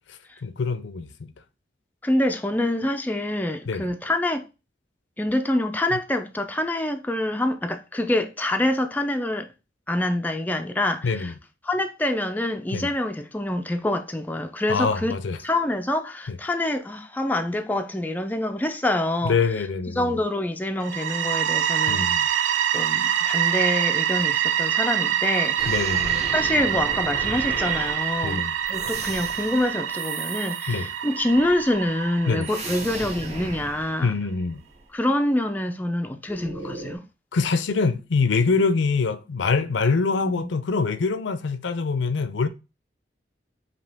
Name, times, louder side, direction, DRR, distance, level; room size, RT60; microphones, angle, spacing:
voice 1, 0.1-1.3 3.7-3.9 11.0-11.3 12.7-12.9 14.7-15.4 16.3-16.4 19.2-20.2 21.9-22.3 25.7-26.3 28.2-28.5 30.7-30.9 32.3-32.5 34.0-34.6 37.3-42.5, left 4 dB, 75° left, 0.5 m, -24 dB
voice 2, 2.0-4.5 5.2-9.5 9.9-11.3 11.6-15.1 15.4-19.4 19.9-22.1 22.7-25.6 26.3-28.4 28.7-34.1 34.9-37.0 40.2-40.5, left 1 dB, 10° left, 0.3 m, -26 dB
sound 1, 20.8-33.5, right 10 dB, 80° right, 0.4 m, -25 dB
sound 2, 25.6-30.9 31.2-34.9 36.3-37.0, right 2 dB, 35° right, 0.9 m, -36 dB
5.1 x 2.8 x 3.4 m
head